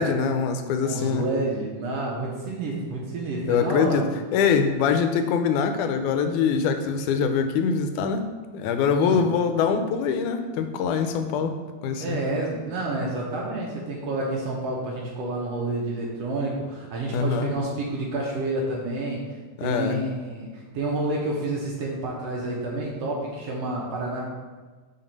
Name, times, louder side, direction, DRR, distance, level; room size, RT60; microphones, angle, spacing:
voice 1, 0.0-1.3 3.5-4.0 4.3-11.6 11.8-12.2 17.1-17.5 19.6-20.0, left 6 dB, 80° left, 7 dB, 1.9 m, -23 dB
voice 2, 0.8-4.0 8.9-9.2 11.1-11.3 12.0-24.2, right 2 dB, 70° right, -3 dB, 1.6 m, -29 dB
5.9 x 3.9 x 5.2 m, 1.4 s
omnidirectional pair, 3.7 m